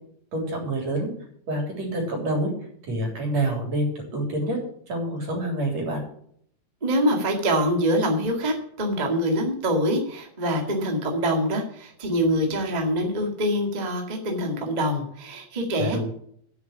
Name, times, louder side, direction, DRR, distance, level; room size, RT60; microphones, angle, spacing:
voice 1, 0.3-1.1 1.5-2.5 2.9-4.6 4.9-6.0 15.8-16.0, right 1 dB, 60° right, 1 dB, 4.6 m, -27 dB
voice 2, 6.8-16.0, equal, 15° right, 2 dB, 1.7 m, -25 dB
10.0 x 7.2 x 8.3 m, 0.65 s
omnidirectional pair, 3.4 m